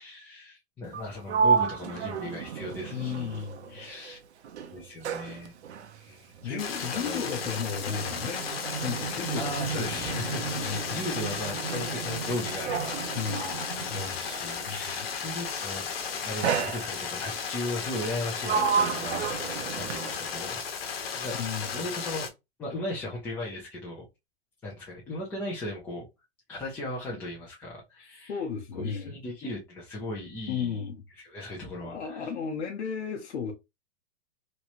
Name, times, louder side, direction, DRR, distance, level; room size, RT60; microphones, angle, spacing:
voice 1, 0.0-3.4 3.7-4.2 4.7-5.5 6.0-7.3 9.3-13.0 13.4-15.8 16.2-20.6 21.0-21.4 21.7-22.3 22.6-24.0 24.6-26.1 26.5-28.4 28.7-30.8 31.2-32.3, left 1 dB, 5° left, 0.4 m, -37 dB
Sliding door, 0.8-4.1 4.4-14.6 15.5-15.8 16.4-17.3 17.9-20.5, right 6 dB, 75° right, 0.8 m, -32 dB
voice 2, 2.9-3.8 6.4-8.5 8.8-11.0 11.6-11.9 13.1-14.2 14.7-15.1 21.4-21.7 28.3-29.1 30.5-31.0 31.8-33.5, left 6 dB, 90° left, 0.9 m, -34 dB
sound 1, 6.6-22.3, left 6 dB, 60° left, 1.1 m, -35 dB
3.1 x 3.0 x 2.5 m
hypercardioid pair, 155°, 34 cm